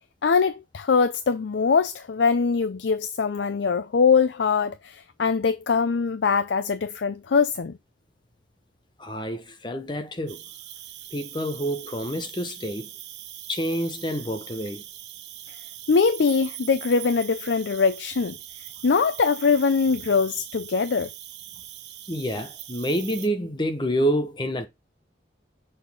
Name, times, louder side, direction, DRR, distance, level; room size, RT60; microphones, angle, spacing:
voice 1, 0.2-7.7 15.9-18.4 18.8-21.1, left 5 dB, 80° left, 0.5 m, -22 dB
voice 2, 9.0-10.4 11.1-12.9 13.5-14.8 22.1-24.7, equal, 25° left, 0.9 m, -28 dB
Cricket, 10.3-23.3, right 12 dB, 75° right, 0.9 m, -41 dB
6.7 x 4.2 x 3.4 m
head